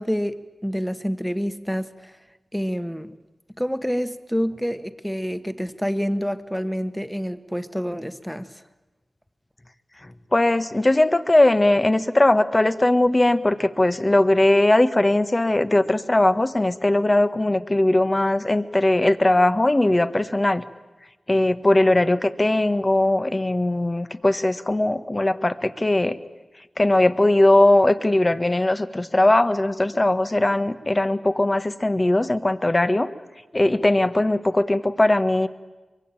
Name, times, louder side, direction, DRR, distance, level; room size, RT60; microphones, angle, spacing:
voice 1, 0.0-2.1 2.5-3.1 3.6-8.6, equal, ahead, 11 dB, 1.4 m, -27 dB
voice 2, 10.3-20.6 21.3-26.2 26.8-33.1 33.5-35.5, left 1 dB, 30° left, 11 dB, 1.3 m, -19 dB
23.5 x 23.0 x 9.1 m, 1.2 s
cardioid pair, 50°, 0 cm